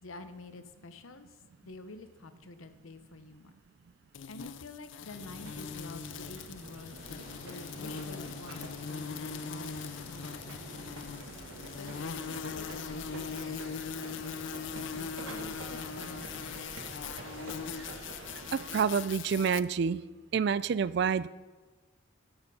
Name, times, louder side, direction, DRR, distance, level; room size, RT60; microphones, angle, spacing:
voice 1, 0.0-3.5 4.3-10.8 11.7-16.6, left 3 dB, 80° left, 10 dB, 0.8 m, -49 dB
sound 1, 4.1-19.6, left 6 dB, 60° left, 0.4 m, -41 dB
sound 2, 5.1-18.8, right 2 dB, 80° right, 1.6 m, -47 dB
sound 3, 7.0-18.7, left 1 dB, 45° left, 2.5 m, -53 dB
voice 2, 18.5-20.0 20.3-21.3, right 6 dB, 55° right, 17 dB, 0.3 m, -28 dB
12.0 x 6.8 x 5.5 m, 1.3 s
head